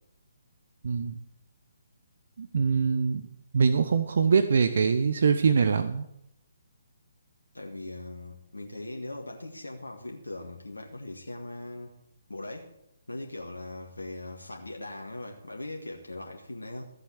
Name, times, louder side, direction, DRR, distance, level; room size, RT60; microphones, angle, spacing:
voice 1, 0.8-1.2 2.4-3.2 3.5-6.0, right 5 dB, 60° right, 10 dB, 0.9 m, -23 dB
voice 2, 7.5-11.9 12.3-12.7 13.1-16.8, left 2 dB, 85° left, 1 dB, 1.8 m, -40 dB
14.5 x 8.0 x 7.3 m, 0.79 s
figure-of-eight pair, 135°, 0 cm